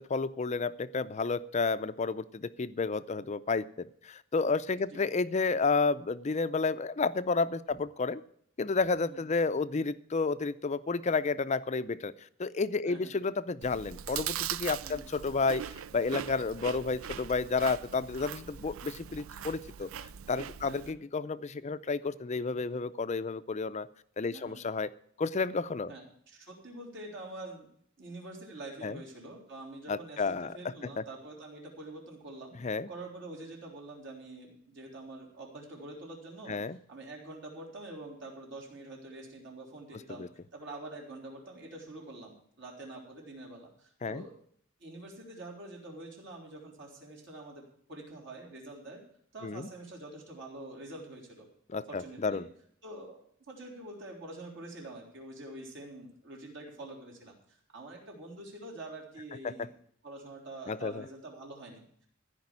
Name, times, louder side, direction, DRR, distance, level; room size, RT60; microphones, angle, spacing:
voice 1, 0.0-8.2 8.6-12.1 12.4-19.9 20.3-23.9 24.2-24.9 25.2-25.9 28.8-28.9 29.9-30.5 31.0-31.1 32.6-32.9 36.5-36.8 40.2-40.3 44.0-44.2 49.4-49.7 51.7-52.5 59.4-59.7 60.7-61.0, left 4 dB, 35° left, 14 dB, 0.5 m, -31 dB
Chewing mastication, 13.6-20.9, right 9 dB, 90° right, 0.5 m, -40 dB
voice 2, 20.6-21.0 24.3-24.6 25.9-27.7 28.0-32.6 32.9-44.3 44.8-49.0 49.3-51.5 51.9-52.5 52.8-59.7 60.0-62.1, right 2 dB, 60° right, -1 dB, 3.7 m, -46 dB
14.5 x 5.3 x 9.6 m, 0.66 s
head